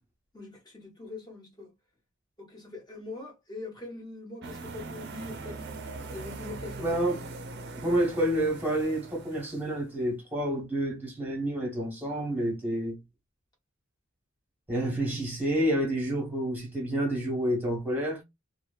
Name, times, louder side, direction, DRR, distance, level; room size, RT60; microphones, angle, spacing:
voice 1, 0.3-1.7 2.4-5.6 6.1-6.9, left 2 dB, 20° left, 1.1 m, -42 dB
sound 1, 4.4-9.9, right 3 dB, 55° right, 0.5 m, -41 dB
voice 2, 6.8-7.2 7.8-13.0 14.7-18.2, right 1 dB, 10° right, 1.2 m, -29 dB
3.0 x 2.1 x 2.3 m
head